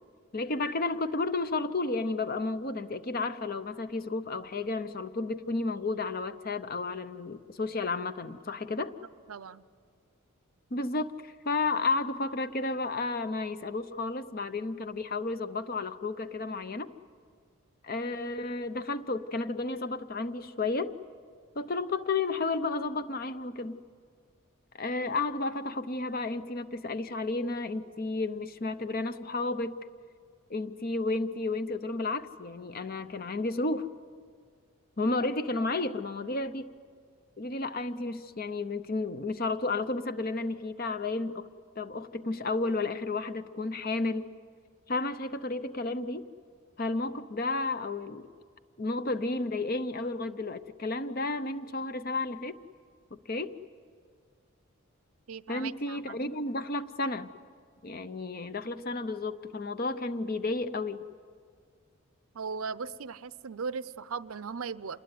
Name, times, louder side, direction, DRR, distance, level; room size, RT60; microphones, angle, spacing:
voice 1, 0.3-8.9 10.7-16.9 17.8-20.9 21.6-23.8 24.8-29.8 30.5-33.9 35.0-36.7 37.4-41.5 41.8-44.3 44.9-46.3 46.8-48.3 48.8-52.6 53.1-53.6 55.5-57.3 57.8-61.0, left 3 dB, 40° left, 12 dB, 0.7 m, -32 dB
voice 2, 9.3-9.6 55.3-56.2 62.3-65.0, right 5 dB, 75° right, 16 dB, 0.6 m, -38 dB
27.5 x 20.0 x 9.5 m, 2.1 s
head